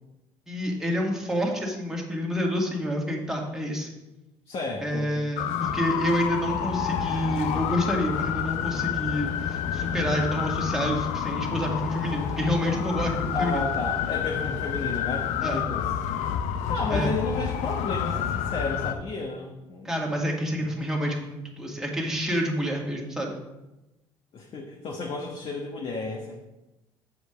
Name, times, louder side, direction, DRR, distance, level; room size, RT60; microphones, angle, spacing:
voice 1, 0.5-3.9 4.8-13.7 15.4-15.7 16.9-17.1 19.8-23.4, equal, 5° right, -1 dB, 1.9 m, -28 dB
voice 2, 4.5-5.2 13.3-15.9 16.7-19.9 24.3-26.4, left 3 dB, 55° left, -1 dB, 1.2 m, -32 dB
sound 1, 5.4-18.9, left 9 dB, 80° left, 0.6 m, -29 dB
7.4 x 5.1 x 5.0 m, 0.99 s
supercardioid pair, 85°, 11 cm